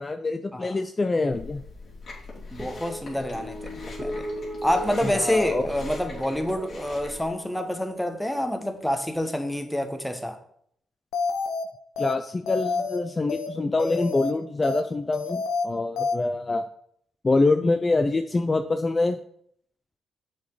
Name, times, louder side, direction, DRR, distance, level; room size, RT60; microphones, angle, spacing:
voice 1, 0.0-1.6 5.0-5.6 12.0-16.6 17.2-19.2, left 3 dB, 30° left, 7 dB, 0.5 m, -25 dB
Chewing mastication, 1.3-7.3, left 3 dB, 50° left, 2.9 m, -41 dB
voice 2, 2.5-4.2 4.6-10.4, left 1 dB, 5° left, 7 dB, 1.1 m, -27 dB
sound 1, 2.6-9.2, right 1 dB, 20° right, 2.2 m, -38 dB
sound 2, 11.1-11.6 12.0-12.1 12.5-13.0 13.3-13.5 13.8-14.3 14.6-14.8 15.1-15.6 16.0-16.1, left 4 dB, 85° left, 1.0 m, -28 dB
7.3 x 4.0 x 4.7 m, 0.67 s
supercardioid pair, 65°, 0 cm